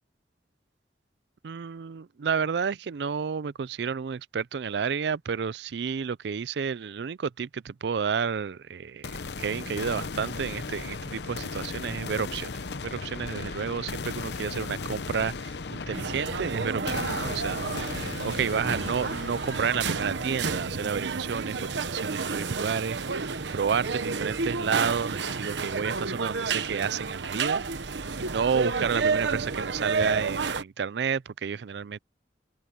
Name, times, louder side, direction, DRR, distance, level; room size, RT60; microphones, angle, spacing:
voice 1, 1.4-12.5 12.8-27.6 28.2-32.0, right 6 dB, 70° right, 0.4 m, -31 dB
sound 1, 9.0-23.0, left 4 dB, 70° left, 0.8 m, -37 dB
sound 2, 15.9-30.6, right 4 dB, 85° right, 1.1 m, -31 dB
head